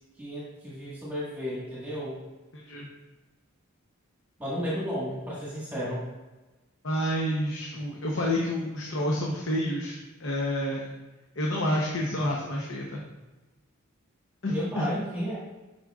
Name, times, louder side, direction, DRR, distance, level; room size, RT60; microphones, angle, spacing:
voice 1, 0.2-2.2 4.4-6.0 14.5-15.4, equal, 10° right, -8 dB, 1.6 m, -33 dB
voice 2, 2.5-2.9 6.8-10.8 11.4-13.1 14.4-14.9, equal, 60° left, -2 dB, 0.8 m, -29 dB
8.2 x 5.3 x 2.4 m, 1.1 s
head